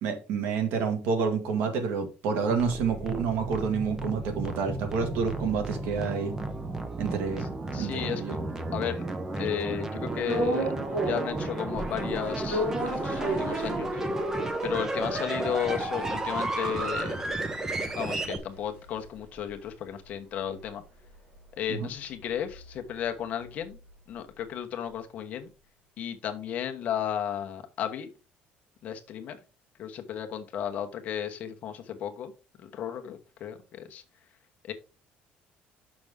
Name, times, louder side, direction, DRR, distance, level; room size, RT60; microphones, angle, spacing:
voice 1, 0.0-6.3 7.0-7.5 7.8-8.4 21.7-21.9, right 5 dB, 75° right, 1.8 m, -29 dB
sound 1, 2.5-18.4, right 2 dB, 15° right, 0.7 m, -33 dB
voice 2, 7.7-8.4 8.7-9.1 9.4-10.7 11.0-13.9 14.6-17.2 18.0-20.8 21.6-23.8 24.1-25.5 26.0-28.1 28.8-29.4 29.8-32.3 32.7-34.0 34.7-34.8, left 9 dB, 45° left, 1.0 m, -34 dB
sound 2, 10.2-11.4 11.7-14.3 14.7-14.8 15.0-19.5 19.8-23.9, right 1 dB, 40° right, 4.4 m, -35 dB
6.6 x 6.1 x 3.6 m
cardioid pair, 170°, 4 cm